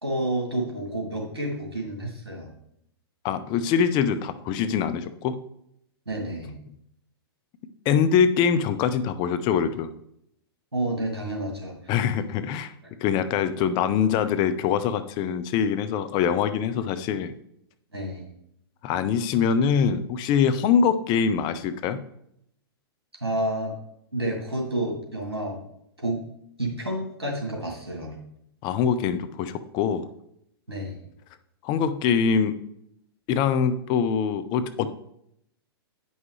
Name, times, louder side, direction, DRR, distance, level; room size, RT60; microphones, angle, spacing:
voice 1, 0.0-2.5 6.1-6.5 10.7-11.9 12.8-12.9 17.9-18.3 23.2-23.7 24.1-25.6 26.0-26.2 26.6-28.2 30.7-31.0, right 1 dB, 90° right, 0 dB, 2.2 m, -30 dB
voice 2, 3.2-5.4 7.9-9.9 11.9-12.7 13.0-17.3 18.8-22.0 28.6-30.1 31.6-32.6 33.3-34.9, left 7 dB, 35° left, 11 dB, 0.6 m, -23 dB
9.3 x 5.5 x 3.2 m, 0.74 s
figure-of-eight pair, 110°, 13 cm